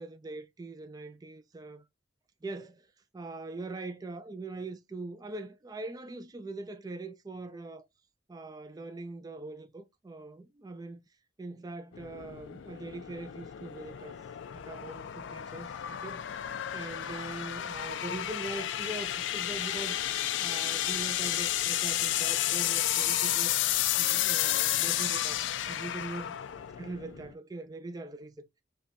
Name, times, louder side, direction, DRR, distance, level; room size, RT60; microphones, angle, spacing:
voice 1, 0.0-1.8 2.4-2.9 3.1-7.8 8.3-11.0 11.4-14.2 14.5-15.7 16.0-16.4 16.7-20.1 20.4-23.6 24.0-26.4 26.8-28.3, right 2 dB, 20° right, 0.3 m, -42 dB
sound 1, 11.9-27.3, left 12 dB, 70° left, 0.3 m, -32 dB
5.1 x 2.2 x 2.7 m
head